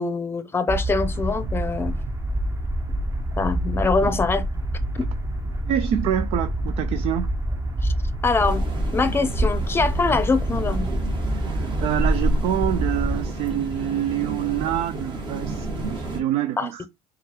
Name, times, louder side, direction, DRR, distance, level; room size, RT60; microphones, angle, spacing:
voice 1, 0.0-1.9 3.4-4.4 4.9-5.1 7.8-7.9 8.2-8.6 8.9-10.9 16.6-16.7, left 4 dB, 20° left, 0.6 m, -23 dB
sound 1, 0.7-13.3, right 1 dB, 25° right, 0.8 m, -27 dB
voice 2, 5.7-7.3 11.3-16.9, right 11 dB, 65° right, 0.4 m, -26 dB
sound 2, 8.4-16.2, right 1 dB, 45° right, 1.3 m, -30 dB
4.6 x 2.4 x 3.0 m
supercardioid pair, 95°, 11 cm